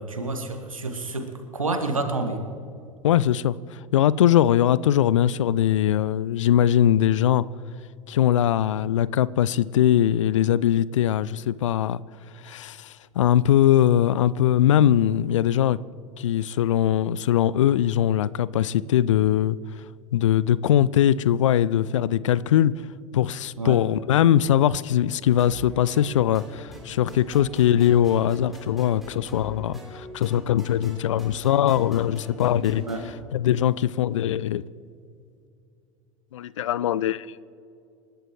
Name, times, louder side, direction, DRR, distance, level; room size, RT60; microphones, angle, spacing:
voice 1, 0.0-2.4 23.6-23.8 32.7-33.1, right 2 dB, 80° right, 1.5 m, -29 dB
voice 2, 3.0-7.4 8.1-12.0 12.4-15.8 16.2-19.6 20.1-22.7 23.1-32.8 33.3-34.6 36.3-37.3, left 11 dB, 65° left, 0.4 m, -21 dB
sound 1, 25.4-33.1, equal, ahead, 3.8 m, -43 dB
28.0 x 11.5 x 3.1 m
figure-of-eight pair, 80°, 17 cm